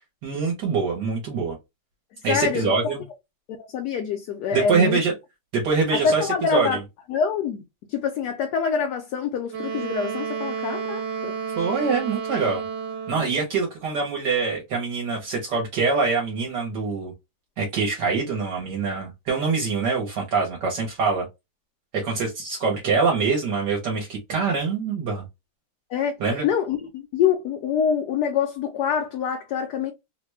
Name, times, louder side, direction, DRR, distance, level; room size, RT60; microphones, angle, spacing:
voice 1, 0.2-1.6 2.2-3.0 4.5-5.1 5.5-6.8 11.6-12.6 13.1-17.1 17.6-21.3 21.9-25.2 26.2-26.5, right 4 dB, 65° right, 1.4 m, -24 dB
voice 2, 2.3-2.9 3.5-5.0 5.9-6.8 7.1-7.6 7.9-11.4 25.9-26.2 26.4-29.9, left 7 dB, 70° left, 1.0 m, -25 dB
Wind instrument woodwind instrument, 9.5-13.4, right 6 dB, 90° right, 1.4 m, -31 dB
3.2 x 2.2 x 3.1 m
omnidirectional pair, 2.1 m